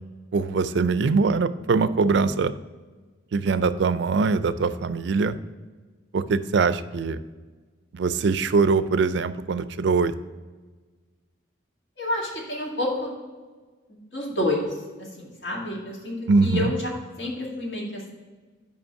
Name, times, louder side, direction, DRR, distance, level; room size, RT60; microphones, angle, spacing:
voice 1, 0.3-2.5 3.3-5.4 6.1-7.2 7.9-10.1 16.3-16.7, right 4 dB, 65° right, 14 dB, 0.4 m, -22 dB
voice 2, 12.0-13.2 13.9-14.7 15.0-16.2 16.4-16.9 17.2-18.1, left 1 dB, 65° left, -3 dB, 2.2 m, -29 dB
5.3 x 5.2 x 6.2 m, 1.4 s
head